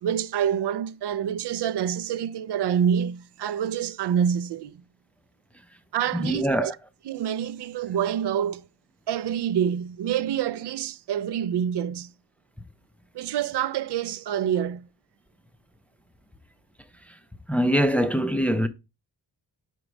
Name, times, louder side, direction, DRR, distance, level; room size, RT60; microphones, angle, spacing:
voice 1, 0.0-4.7 5.9-6.7 7.1-8.6 9.1-12.1 13.1-14.9, right 9 dB, 90° right, 0.5 m, -27 dB
voice 2, 6.2-6.7 17.5-18.7, equal, 5° left, 0.4 m, -23 dB
5.1 x 4.6 x 4.9 m
wide cardioid pair, 165°, 39 cm